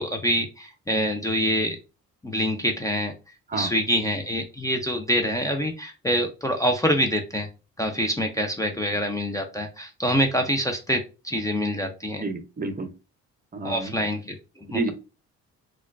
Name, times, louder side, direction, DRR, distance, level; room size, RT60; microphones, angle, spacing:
voice 1, 0.0-1.8 2.2-3.1 3.5-7.5 7.8-12.2 13.6-14.9, equal, 10° left, 4 dB, 0.5 m, -26 dB
voice 2, 12.2-12.9 13.5-13.9 14.7-14.9, right 3 dB, 30° right, 7 dB, 0.7 m, -29 dB
4.2 x 2.3 x 2.4 m, 0.30 s
cardioid pair, 90°, 30 cm